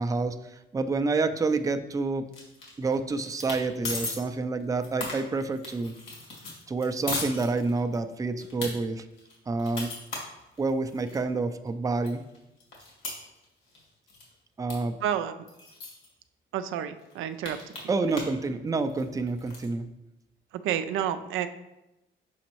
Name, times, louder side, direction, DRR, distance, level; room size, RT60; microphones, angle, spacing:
voice 1, 0.0-2.3 2.8-5.9 6.7-9.1 9.5-9.9 10.6-12.2 14.6-15.0 17.9-19.9, right 3 dB, 15° right, 8 dB, 0.4 m, -28 dB
sound 1, 2.3-3.0 3.3-3.6 3.8-4.2 4.6-8.0 8.4-8.7 9.2-11.2 11.7-11.8 12.0-13.8 14.1-14.3 14.7-14.8 15.0-15.1 15.5-16.1 16.6-16.7 17.0-18.4 18.7-19.7, left 2 dB, 85° left, 2.1 m, -37 dB
voice 2, 15.0-15.3 16.5-17.8 18.1-18.2 20.5-21.5, right 10 dB, 85° right, 10 dB, 0.4 m, -30 dB
6.3 x 5.0 x 3.0 m, 0.92 s
cardioid pair, 90°, 20 cm